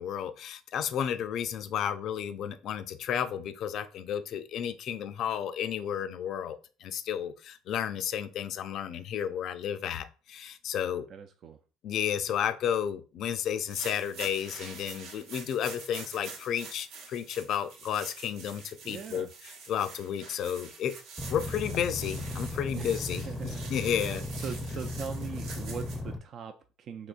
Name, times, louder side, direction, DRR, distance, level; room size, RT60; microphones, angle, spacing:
voice 1, 0.0-11.1 11.8-19.3 19.7-20.9 21.3-24.2, left 9 dB, 60° left, 0.4 m, -32 dB
voice 2, 11.1-11.6 18.9-19.3 22.8-27.1, right 7 dB, 50° right, 0.4 m, -41 dB
sound 1, 13.5-26.0, right 4 dB, 75° right, 0.9 m, -46 dB
sound 2, 21.2-26.2, left 1 dB, 10° left, 0.5 m, -36 dB
3.8 x 2.9 x 2.4 m
supercardioid pair, 100°, 0 cm